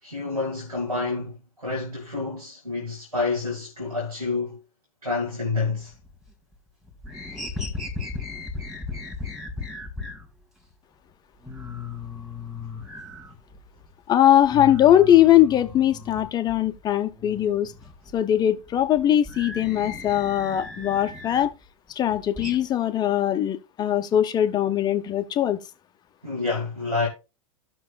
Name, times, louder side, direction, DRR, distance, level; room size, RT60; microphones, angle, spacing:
voice 1, 0.0-4.6 5.0-5.9 26.2-27.1, left 3 dB, 90° right, 2.3 m, -28 dB
sound 1, 5.8-6.5 6.8-10.3 10.7-10.8 11.1-11.2 11.4-13.9 14.2-16.8 17.1-21.5 21.9-22.6, left 3 dB, ahead, 1.8 m, -37 dB
voice 2, 14.1-17.7 18.1-21.5 22.0-25.6, left 11 dB, 20° left, 0.7 m, -20 dB
15.5 x 6.1 x 2.4 m
figure-of-eight pair, 95°, 19 cm